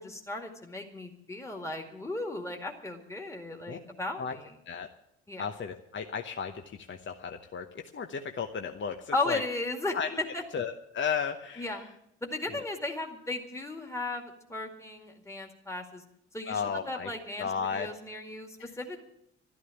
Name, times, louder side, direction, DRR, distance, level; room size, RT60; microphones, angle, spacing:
voice 1, 0.0-4.5 5.3-5.4 9.1-10.4 11.6-11.9 12.2-16.0 16.3-19.0, left 2 dB, 10° left, 2 dB, 2.1 m, -36 dB
voice 2, 5.4-9.4 9.9-10.1 10.5-11.9 16.5-17.1 17.4-17.9 18.6-18.7, left 6 dB, 35° left, 6 dB, 1.0 m, -34 dB
12.5 x 12.5 x 7.2 m, 0.77 s
figure-of-eight pair, 45°, 34 cm